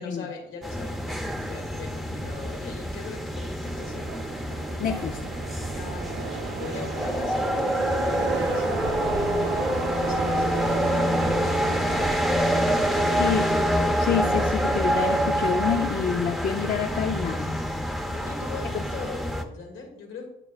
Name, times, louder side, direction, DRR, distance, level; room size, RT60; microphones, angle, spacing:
voice 1, 0.0-4.2 5.7-13.4 18.1-20.3, left 4 dB, 75° left, 1 dB, 2.0 m, -41 dB
sound 1, 0.6-19.4, equal, ahead, 0.8 m, -26 dB
Subway metro underground, 3.6-16.0, right 8 dB, 70° right, 0.5 m, -35 dB
voice 2, 4.8-5.2 13.2-13.5 14.0-17.5, left 7 dB, 45° left, 3 dB, 0.6 m, -27 dB
8.8 x 6.8 x 2.4 m, 0.82 s
cardioid pair, 90°, 20 cm